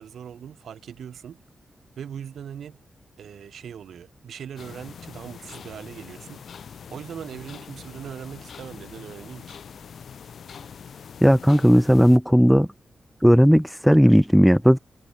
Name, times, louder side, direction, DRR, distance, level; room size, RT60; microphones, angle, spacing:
voice 1, 0.0-1.4 2.0-2.8 3.2-6.4 6.9-9.6, right 8 dB, 80° right, 5.1 m, -40 dB
sound 1, 4.6-12.2, left 7 dB, 55° left, 1.0 m, -43 dB
voice 2, 11.2-12.7 13.2-14.8, equal, ahead, 0.3 m, -16 dB
wide cardioid pair, 180°, 0 cm